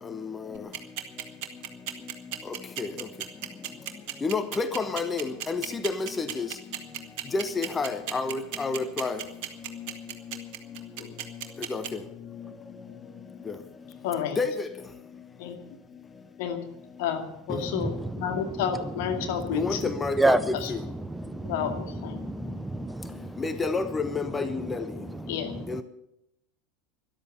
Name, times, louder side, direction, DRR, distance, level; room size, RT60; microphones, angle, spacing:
sound 1, 0.5-11.9, right 12 dB, 50° right, 1.7 m, -34 dB
voice 1, 4.2-6.5 7.3-9.2 11.7-11.8 14.4-14.5 19.5-20.4 20.7-20.8 23.4-24.8 25.7-25.8, left 4 dB, 20° left, 10 dB, 1.1 m, -29 dB
voice 2, 14.0-14.4 15.4-15.6 16.4-16.6 17.0-19.9 20.6-20.7 21.4-22.2 25.3-25.5, left 8 dB, 55° left, 5 dB, 2.2 m, -31 dB
voice 3, 17.5-18.4 18.8-19.9 20.2-23.4 25.0-25.8, right 2 dB, 5° right, 15 dB, 0.5 m, -31 dB
13.5 x 11.5 x 8.1 m, 0.84 s
figure-of-eight pair, 80°, 0 cm